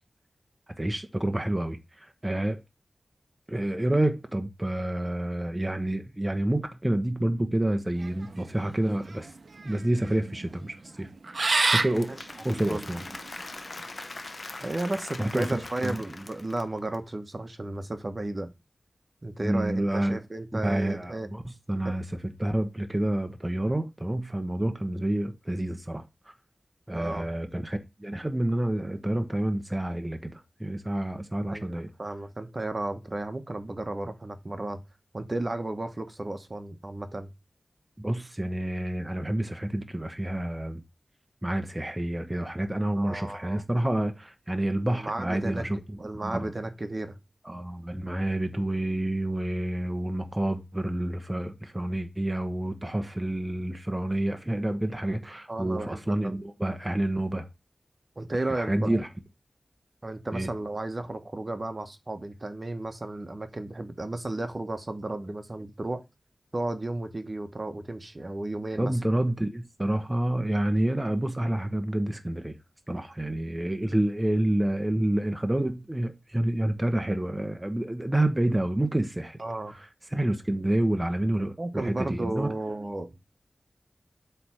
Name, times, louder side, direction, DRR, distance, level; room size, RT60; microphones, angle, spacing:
voice 1, 0.8-2.6 3.5-9.3 9.6-13.0 15.2-15.9 19.4-20.2 20.5-26.3 26.9-31.9 38.0-40.8 41.4-46.5 47.4-57.5 58.5-59.1 60.3-60.5 68.8-72.6 72.9-79.4 79.7-82.5, right 1 dB, 20° right, 1.0 m, -28 dB
sound 1, 8.0-13.8, right 3 dB, 65° right, 0.8 m, -30 dB
Applause / Crowd, 11.6-16.9, left 2 dB, 50° left, 1.0 m, -42 dB
voice 2, 12.5-12.9 14.6-18.5 19.2-21.3 21.8-21.9 26.9-27.3 31.5-34.8 35.1-37.3 42.9-43.6 45.0-45.7 46.0-47.2 55.5-56.4 58.2-59.0 60.0-66.0 66.5-68.9 79.4-79.8 81.6-83.1, right 2 dB, 40° right, 1.2 m, -33 dB
7.8 x 3.4 x 6.1 m
wide cardioid pair, 55°, 0 cm